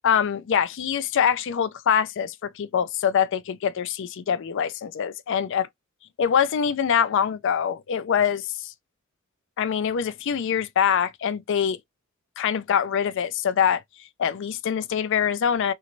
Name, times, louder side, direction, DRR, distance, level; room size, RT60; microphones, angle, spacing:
voice 1, 0.0-5.7 6.2-8.7 9.6-11.8 12.4-13.8 14.2-15.7, left 8 dB, 65° left, 0.4 m, -24 dB
3.2 x 2.9 x 2.6 m
head